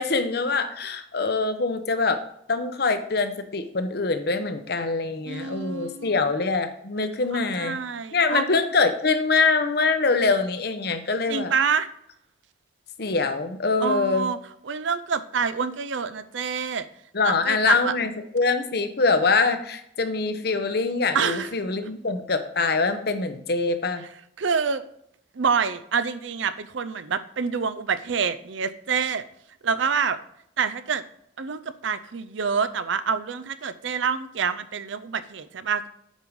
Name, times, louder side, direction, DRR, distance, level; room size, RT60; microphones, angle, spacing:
voice 1, 0.0-2.2 2.5-7.8 8.1-11.5 13.0-14.3 17.1-24.0, left 4 dB, 55° left, 8 dB, 0.8 m, -24 dB
voice 2, 5.3-6.2 7.3-8.4 11.3-11.9 13.8-14.4 14.7-16.9 17.2-17.9 21.1-21.5 24.4-24.8 25.4-29.2 29.6-30.2 30.6-31.0 31.4-35.9, right 6 dB, 70° right, 13 dB, 0.5 m, -27 dB
8.3 x 5.3 x 4.7 m, 0.73 s
head